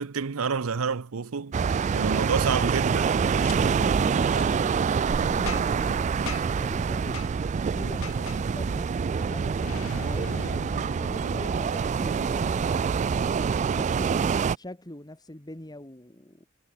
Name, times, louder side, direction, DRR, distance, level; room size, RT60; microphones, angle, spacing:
voice 1, 0.0-1.6 1.9-3.2, right 5 dB, 80° right, 0.7 m, -28 dB
sound 1, 1.5-14.6, right 6 dB, 35° right, 0.3 m, -26 dB
Boom, 3.4-3.6 4.3-4.5 5.5-5.9 6.3-6.6 7.1-7.3 8.0-8.4 9.6-12.3, left 4 dB, 90° left, 4.5 m, -39 dB
voice 2, 3.5-7.2 7.7-9.6 9.9-10.6 11.0-12.9 13.7-16.5, left 1 dB, 20° left, 2.0 m, -42 dB
head